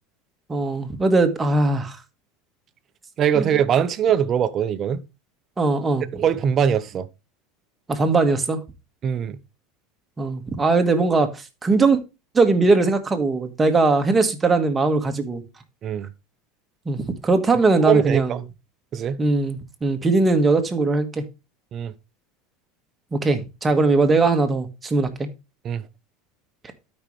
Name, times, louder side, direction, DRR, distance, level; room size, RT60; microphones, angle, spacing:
voice 1, 0.5-2.0 3.4-3.5 5.6-6.0 7.9-8.6 10.2-12.0 12.3-15.4 16.8-18.4 19.2-21.2 23.1-25.3, right 3 dB, 20° right, 1.6 m, -20 dB
voice 2, 3.2-5.0 6.1-7.1 9.0-9.4 15.8-16.1 17.7-18.4 18.9-19.2 21.7-21.9 25.6-25.8, right 8 dB, 40° right, 0.8 m, -22 dB
12.5 x 5.4 x 3.2 m
supercardioid pair, 110°, 0 cm